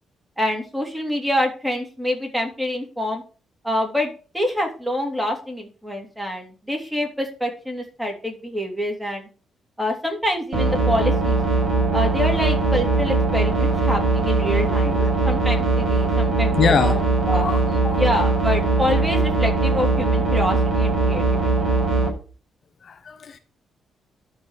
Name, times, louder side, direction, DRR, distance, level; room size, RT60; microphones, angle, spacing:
voice 1, 0.4-3.2 3.6-9.3 9.8-11.4 11.9-17.5 18.0-21.5, left 1 dB, 5° right, 1 dB, 2.9 m, -26 dB
sound 1, 10.5-22.1, right 3 dB, 60° right, 5.5 m, -20 dB
voice 2, 14.7-15.1 16.6-17.0 17.3-18.0 22.8-23.4, left 5 dB, 50° left, 8 dB, 0.9 m, -24 dB
12.0 x 4.8 x 6.4 m, 0.36 s
cardioid pair, 130°, 0 cm